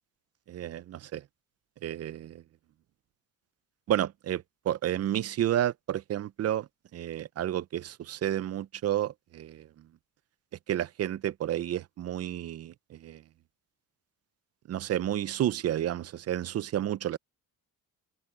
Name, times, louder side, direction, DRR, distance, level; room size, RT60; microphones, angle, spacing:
voice 1, 0.5-1.2 1.8-2.4 3.9-6.7 6.9-9.7 10.7-13.2 14.7-17.2, right 11 dB, 45° right, 0.4 m, -31 dB
wide cardioid pair, 175°, 36 cm